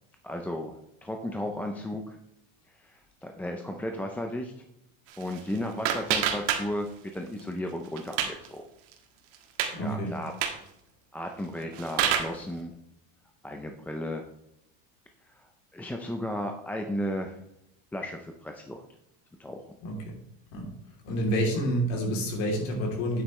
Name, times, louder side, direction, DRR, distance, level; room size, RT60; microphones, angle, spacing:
voice 1, 0.2-2.2 2.8-4.5 5.2-8.6 9.8-10.3 11.1-12.7 13.4-14.2 15.4-17.4 17.9-18.8 19.4-19.7, left 1 dB, 5° left, 3 dB, 0.5 m, -34 dB
sound 1, 5.1-7.1 7.4-8.5 8.9-9.0 9.3-9.7 10.3-10.7 11.4-12.4, right 9 dB, 75° right, 1.6 m, -29 dB
voice 2, 9.7-10.2 19.8-20.1 20.5-20.7 21.0-23.2, equal, 80° left, 0 dB, 3.2 m, -28 dB
9.2 x 8.0 x 3.2 m, 0.80 s
cardioid pair, 155°, 37 cm